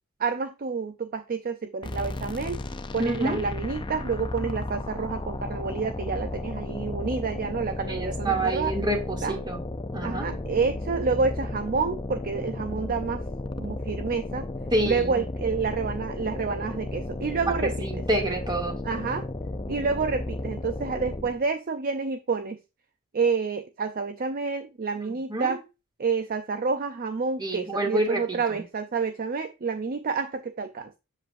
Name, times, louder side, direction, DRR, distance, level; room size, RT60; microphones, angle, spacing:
voice 1, 0.2-2.6 2.9-8.8 9.2-9.4 10.0-13.2 13.6-14.5 14.8-18.0 18.8-19.3 19.7-22.6 23.1-25.6 26.0-30.9, right 5 dB, 40° right, 0.5 m, -29 dB
sound 1, 1.8-21.5, left 2 dB, 20° left, 0.5 m, -34 dB
voice 2, 3.0-3.4 7.9-9.6 9.9-10.3 14.7-15.3 17.5-18.8 25.3-25.6 27.4-28.6, right 1 dB, 20° right, 2.4 m, -28 dB
7.6 x 7.4 x 2.6 m
head